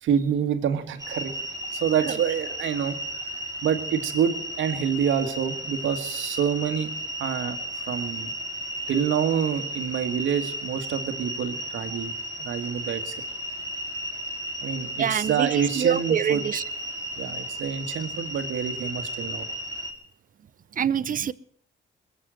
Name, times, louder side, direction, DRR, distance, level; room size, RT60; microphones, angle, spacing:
voice 1, 0.0-1.3 1.7-3.0 3.6-6.9 7.2-8.3 8.9-12.1 12.4-13.2 14.6-16.4 17.2-19.5, right 8 dB, 80° right, 1.7 m, -27 dB
sound 1, 1.0-19.9, equal, 20° right, 3.0 m, -34 dB
voice 2, 15.0-16.6 20.8-21.3, right 8 dB, 45° right, 0.6 m, -26 dB
21.5 x 7.8 x 7.7 m
cardioid pair, 90°, 20 cm